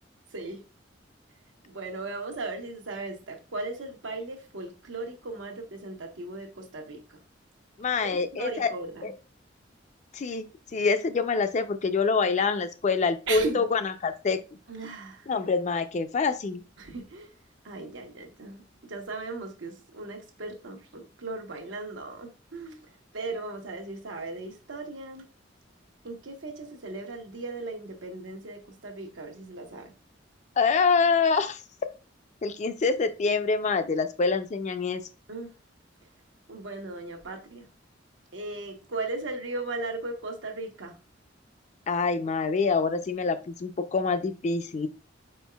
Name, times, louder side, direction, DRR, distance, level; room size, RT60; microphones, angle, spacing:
voice 1, 0.3-0.6 1.6-7.2 8.0-9.1 13.3-13.6 14.7-15.3 16.8-17.3 17.6-22.8 23.1-25.2 26.0-29.9 35.3-35.5 36.5-37.7 38.3-41.0, right 2 dB, 85° right, 1.0 m, -37 dB
voice 2, 7.8-8.7 9.0-9.1 10.1-10.5 10.7-14.4 15.3-16.6 30.6-31.6 32.4-35.0 41.9-44.9, left 4 dB, 40° left, 0.4 m, -26 dB
4.7 x 4.4 x 2.3 m
head